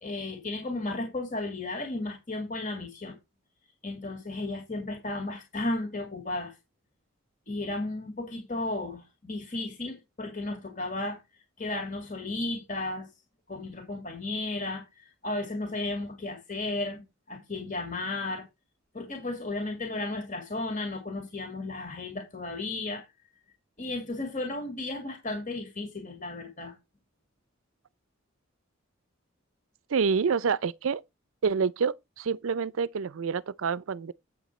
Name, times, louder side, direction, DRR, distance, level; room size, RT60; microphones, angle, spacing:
voice 1, 0.0-3.2 3.8-6.5 7.5-11.2 11.6-13.1 13.5-14.8 15.2-18.4 18.9-23.1 23.8-26.7, left 2 dB, 40° left, 2.2 m, -34 dB
voice 2, 29.9-31.0 31.4-34.1, right 5 dB, 85° right, 0.5 m, -27 dB
8.4 x 7.2 x 4.2 m
head